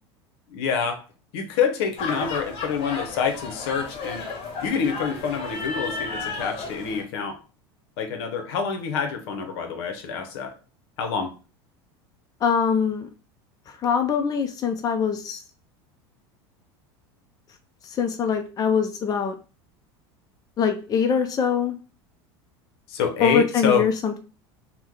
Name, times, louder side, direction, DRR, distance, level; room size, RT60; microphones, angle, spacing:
voice 1, 0.5-1.0 1.3-4.3 4.6-7.4 8.0-10.6 11.0-11.3 22.9-23.8, left 6 dB, 70° left, 5 dB, 0.8 m, -26 dB
sound 1, 2.0-7.0, left 4 dB, 45° left, 1.5 m, -33 dB
voice 2, 12.4-13.1 13.8-15.4 17.8-19.3 20.6-21.8 23.2-24.2, left 6 dB, 30° left, 6 dB, 0.5 m, -23 dB
2.8 x 2.2 x 3.5 m, 0.35 s
hypercardioid pair, 95°, 14 cm